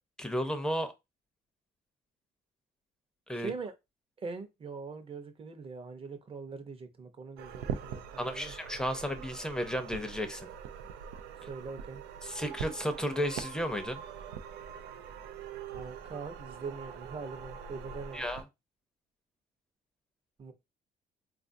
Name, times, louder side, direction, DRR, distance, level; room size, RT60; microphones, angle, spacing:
voice 1, 0.2-0.9 3.3-3.5 8.2-10.5 12.2-14.0 18.1-18.4, equal, 5° left, 0.6 m, -33 dB
voice 2, 3.3-3.7 4.2-8.5 11.4-12.0 15.7-18.2 20.4-20.5, right 4 dB, 35° right, 0.7 m, -42 dB
sound 1, 7.4-18.4, right 7 dB, 85° right, 0.4 m, -43 dB
3.7 x 2.4 x 2.6 m
cardioid pair, 110°, 17 cm